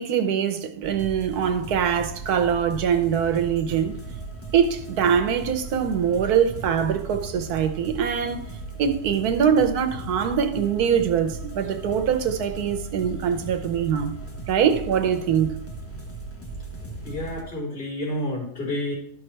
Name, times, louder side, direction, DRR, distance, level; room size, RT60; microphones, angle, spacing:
voice 1, 0.0-4.0 4.5-8.5 8.8-14.1 14.5-15.6, right 8 dB, 70° right, 1.2 m, -23 dB
sound 1, 0.8-17.4, right 3 dB, 10° left, 1.1 m, -37 dB
voice 2, 17.0-18.9, left 1 dB, 30° left, 3.8 m, -29 dB
12.5 x 5.8 x 3.3 m
omnidirectional pair, 1.8 m